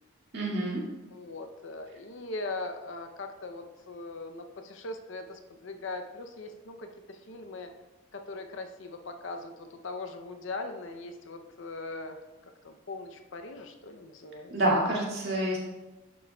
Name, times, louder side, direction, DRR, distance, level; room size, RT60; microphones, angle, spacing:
voice 1, 0.3-0.8 14.5-15.6, right 1 dB, 50° right, -4 dB, 2.0 m, -27 dB
voice 2, 1.1-7.7 8.1-12.2 12.6-14.5, left 2 dB, 60° left, 6 dB, 0.6 m, -40 dB
11.5 x 6.2 x 2.3 m, 1.1 s
head